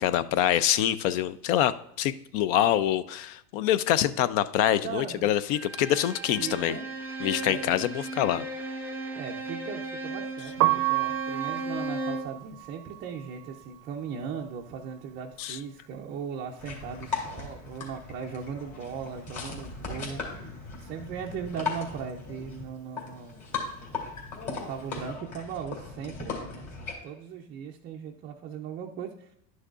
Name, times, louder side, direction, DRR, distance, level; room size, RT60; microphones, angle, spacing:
voice 1, 0.0-1.7 2.0-6.8 7.2-8.5 15.4-15.6, left 11 dB, 50° left, 16 dB, 0.5 m, -25 dB
voice 2, 4.8-5.3 6.3-6.8 7.4-7.7 9.2-23.4 24.5-29.3, right 7 dB, 20° right, -1 dB, 0.4 m, -38 dB
Bowed string instrument, 5.5-12.4, right 2 dB, 5° right, 0.8 m, -36 dB
Piano, 10.5-16.4 16.7-18.3 18.5-25.0, right 19 dB, 80° right, 0.6 m, -33 dB
sound 1, 16.6-26.9, left 4 dB, 35° left, 2.6 m, -38 dB
11.0 x 6.3 x 2.4 m, 0.75 s
supercardioid pair, 125°, 50 cm